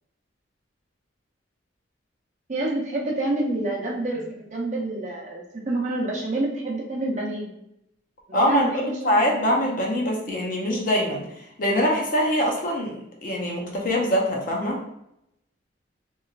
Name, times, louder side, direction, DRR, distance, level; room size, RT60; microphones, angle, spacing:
voice 1, 2.5-7.5 8.3-9.6, right 2 dB, 40° right, -3 dB, 0.6 m, -28 dB
voice 2, 8.3-8.7 9.0-14.8, equal, 45° left, 0 dB, 0.5 m, -23 dB
3.0 x 2.4 x 2.3 m, 0.78 s
head